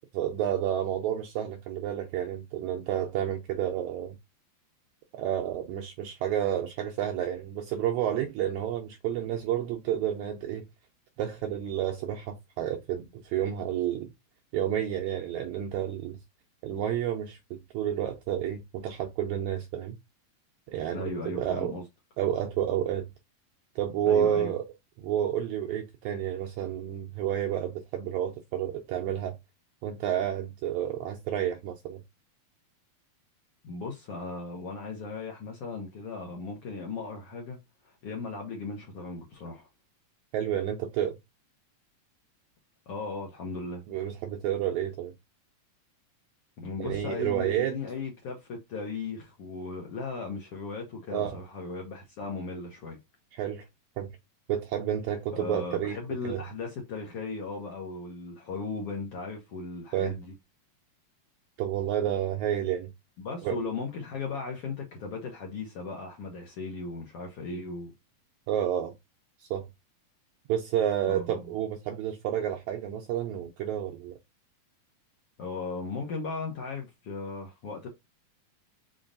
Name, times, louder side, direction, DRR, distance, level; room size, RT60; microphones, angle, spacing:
voice 1, 0.1-4.2 5.1-10.7 11.2-14.1 14.5-16.2 16.6-20.0 20.7-21.7 22.2-23.1 23.7-24.6 25.0-29.4 29.8-32.0 40.3-41.2 43.9-45.1 46.8-47.8 51.1-51.4 53.3-53.7 54.0-54.1 54.5-56.0 56.2-56.4 59.9-60.1 61.6-62.9 63.4-63.6 68.5-68.9 69.4-69.7 70.5-74.2, right 10 dB, 85° right, 1.7 m, -30 dB
voice 2, 20.9-21.8 24.1-24.5 33.6-37.6 37.8-39.7 42.9-43.8 46.6-53.0 55.3-60.3 63.2-67.9 71.1-71.5 75.4-77.9, left 4 dB, 65° left, 1.5 m, -37 dB
5.2 x 3.8 x 2.5 m
omnidirectional pair, 3.9 m